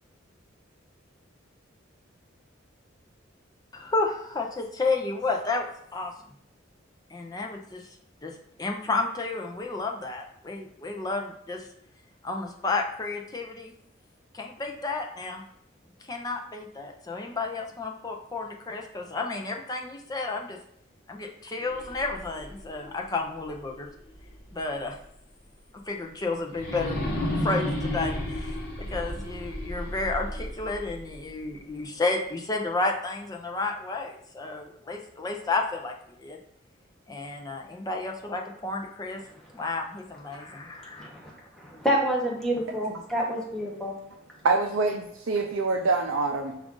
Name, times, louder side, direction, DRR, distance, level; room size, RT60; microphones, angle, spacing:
voice 1, 3.7-6.1 7.1-8.0 8.2-11.7 12.2-13.7 14.3-15.4 16.1-20.6 21.1-23.9 24.5-25.0 25.9-36.4 37.1-39.2 39.5-41.1, left 3 dB, 20° left, 2 dB, 0.5 m, -31 dB
sound 1, 21.6-24.6 25.0-25.1 26.5-31.6, left 1 dB, 50° left, 1.0 m, -33 dB
voice 2, 41.0-41.3 41.6-43.9, right 1 dB, ahead, -4 dB, 0.8 m, -28 dB
voice 3, 44.4-46.6, right 3 dB, 80° right, 2 dB, 0.4 m, -25 dB
5.0 x 2.4 x 3.7 m, 0.72 s
head